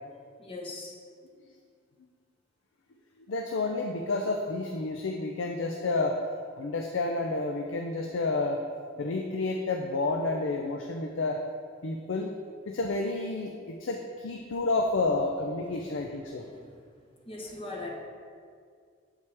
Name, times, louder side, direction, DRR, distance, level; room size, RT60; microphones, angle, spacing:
voice 1, 0.4-1.0 16.3-16.8 17.2-17.9, left 2 dB, 30° left, -1 dB, 1.1 m, -40 dB
voice 2, 3.3-6.2 6.6-8.6 9.0-11.4 11.8-12.3 12.7-16.4, left 3 dB, 75° left, 3 dB, 0.5 m, -30 dB
7.9 x 5.6 x 3.5 m, 2.1 s
head